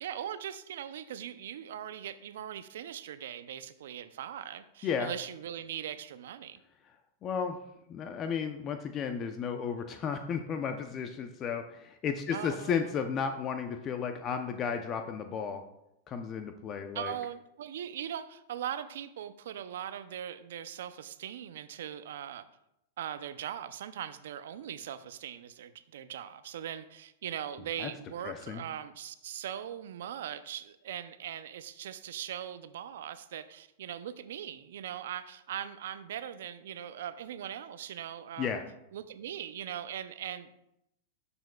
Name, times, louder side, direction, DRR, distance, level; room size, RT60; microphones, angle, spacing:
voice 1, 0.0-6.6 12.3-12.8 16.9-22.4 23.0-38.5 38.9-40.6, right 10 dB, 70° right, 12 dB, 0.6 m, -40 dB
voice 2, 7.2-7.6 7.9-15.6 16.1-17.1 27.8-27.9 28.2-28.6 38.4-38.6, left 6 dB, 35° left, 6 dB, 0.7 m, -33 dB
12.0 x 6.9 x 2.3 m, 0.83 s
hypercardioid pair, 105°, 0 cm